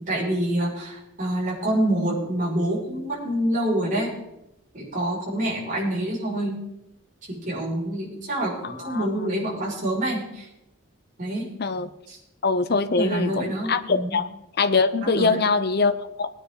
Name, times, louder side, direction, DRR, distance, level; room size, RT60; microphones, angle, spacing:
voice 1, 0.0-4.1 4.7-6.6 7.3-10.5 11.2-11.5 12.1-12.2 12.9-14.2 15.0-15.4, right 1 dB, 40° right, -5 dB, 5.7 m, -26 dB
voice 2, 8.6-9.3 11.6-11.9 12.4-14.3 14.6-16.3, left 4 dB, 50° left, 10 dB, 0.7 m, -23 dB
20.0 x 9.8 x 3.9 m, 0.88 s
head